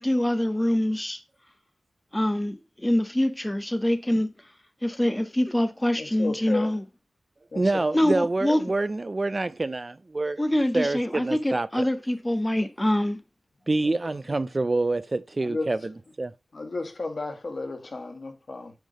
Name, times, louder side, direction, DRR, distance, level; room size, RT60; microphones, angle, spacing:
voice 1, 0.0-1.2 2.1-4.3 4.8-6.8 7.9-8.6 10.4-13.2, left 1 dB, 10° left, 0.7 m, -25 dB
voice 2, 6.0-6.7 7.5-8.1 13.8-14.1 15.4-15.7 16.5-18.7, left 3 dB, 45° left, 1.4 m, -33 dB
voice 3, 7.6-10.4 10.7-11.9 13.7-15.8 16.2-16.3, right 2 dB, 30° right, 0.4 m, -26 dB
9.2 x 3.4 x 5.1 m
wide cardioid pair, 125°, 0 cm